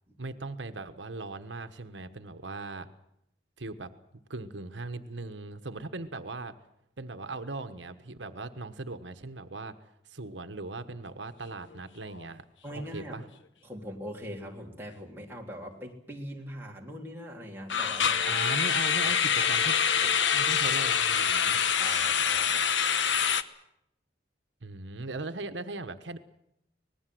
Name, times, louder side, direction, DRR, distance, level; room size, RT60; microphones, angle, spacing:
voice 1, 0.2-2.9 3.6-3.9 4.3-6.5 7.0-9.7 10.0-12.4 12.7-13.2 18.3-19.8 20.3-21.6 24.6-26.2, right 3 dB, 85° right, 9 dB, 1.3 m, -39 dB
sound 1, 11.5-11.8 12.1-12.3 12.7-12.8 17.7-23.4, left 7 dB, 85° left, 1.1 m, -26 dB
voice 2, 12.6-13.2 13.6-18.4 19.0-19.6 20.0-20.1 21.8-22.6, equal, 10° right, -1 dB, 3.5 m, -42 dB
25.5 x 19.5 x 7.8 m, 0.78 s
head